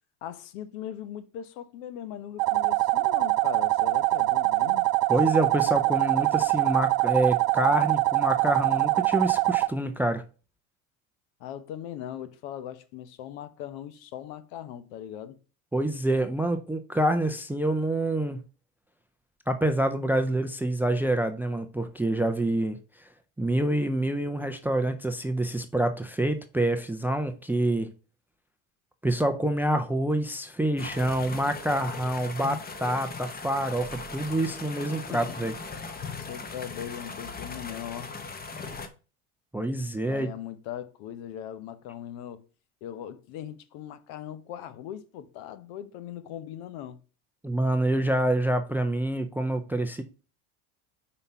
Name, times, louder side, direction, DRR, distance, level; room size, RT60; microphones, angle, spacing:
voice 1, 0.2-4.9 11.4-15.4 35.1-35.4 36.1-38.1 40.0-42.5 42.8-47.0, left 10 dB, 75° left, 1.1 m, -39 dB
sound 1, 2.4-9.7, right 19 dB, 60° right, 0.5 m, -24 dB
voice 2, 5.1-10.2 15.7-18.4 19.5-22.8 23.4-27.9 29.0-35.5 39.5-40.3 47.4-50.0, right 1 dB, 5° right, 0.4 m, -27 dB
sound 2, 30.8-38.9, left 4 dB, 20° left, 1.0 m, -39 dB
5.6 x 4.3 x 5.5 m
supercardioid pair, 110°, 42 cm